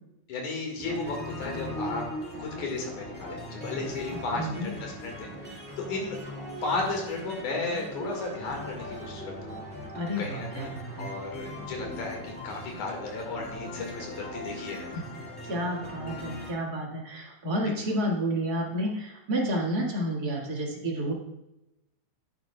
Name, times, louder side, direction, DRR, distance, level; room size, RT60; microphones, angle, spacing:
voice 1, 0.3-2.0 2.4-6.2 6.6-9.6 10.2-10.7 11.0-14.9 17.6-17.7, left 3 dB, 75° left, 1 dB, 3.4 m, -34 dB
sound 1, 0.8-16.5, left 1 dB, 5° left, 1.4 m, -39 dB
voice 2, 4.1-4.7 9.9-11.1 14.9-15.0 15.4-21.1, equal, 35° right, -3 dB, 2.3 m, -30 dB
10.5 x 9.7 x 2.4 m, 0.91 s
omnidirectional pair, 3.4 m